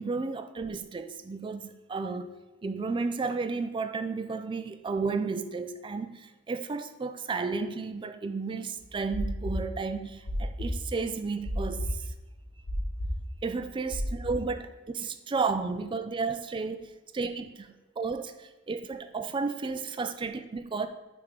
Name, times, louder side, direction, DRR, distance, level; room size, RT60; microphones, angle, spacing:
voice 1, 0.0-12.1 13.4-20.9, right 4 dB, 25° right, 9 dB, 0.3 m, -33 dB
sound 1, 8.8-12.1 12.4-14.3, equal, 85° left, 1.5 m, -33 dB
6.6 x 3.6 x 4.8 m, 1.1 s
head